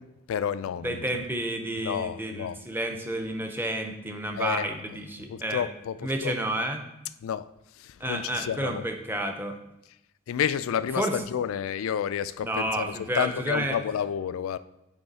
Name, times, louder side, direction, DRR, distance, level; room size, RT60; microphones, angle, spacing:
voice 1, 0.0-1.0 1.8-2.6 4.4-4.6 5.3-6.3 7.2-7.4 7.8-8.8 10.3-14.6, left 8 dB, 90° left, 0.3 m, -30 dB
voice 2, 0.8-5.7 6.0-6.8 8.0-9.6 10.9-11.2 12.4-13.8, right 1 dB, 10° right, 0.6 m, -30 dB
9.1 x 3.2 x 4.1 m
head